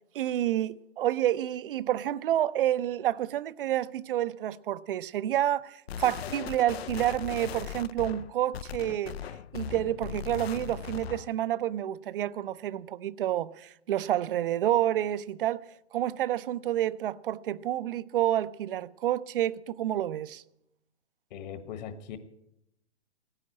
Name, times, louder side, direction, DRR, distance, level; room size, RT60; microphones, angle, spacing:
voice 1, 0.1-9.2 9.5-15.6 15.9-20.4, right 12 dB, 50° right, 0.6 m, -29 dB
sound 1, 5.9-11.3, left 9 dB, 60° left, 0.6 m, -39 dB
voice 2, 21.3-22.2, left 8 dB, 40° left, 1.4 m, -40 dB
16.0 x 9.8 x 8.5 m
hypercardioid pair, 140°, 35 cm